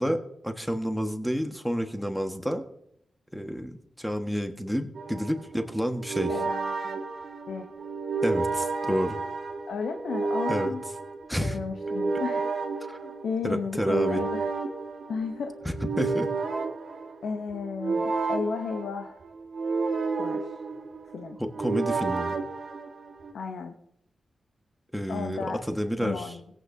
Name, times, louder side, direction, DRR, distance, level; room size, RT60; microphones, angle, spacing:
voice 1, 0.0-2.6 3.3-6.3 8.2-9.2 10.5-10.7 11.3-11.6 12.9-13.0 13.4-14.2 15.6-16.3 21.4-22.4 24.9-26.4, equal, ahead, 6 dB, 1.5 m, -29 dB
sound 1, 4.9-23.3, right 4 dB, 70° right, 1.5 m, -31 dB
voice 2, 6.3-7.0 7.5-7.7 8.9-9.0 9.7-10.8 11.4-12.5 13.0-14.5 15.1-15.6 17.2-19.2 20.2-20.6 21.1-21.4 23.3-23.8 25.1-25.6 26.0-26.4, left 5 dB, 85° left, 5 dB, 0.8 m, -34 dB
17.5 x 8.6 x 2.7 m, 0.73 s
cardioid pair, 45°, 0 cm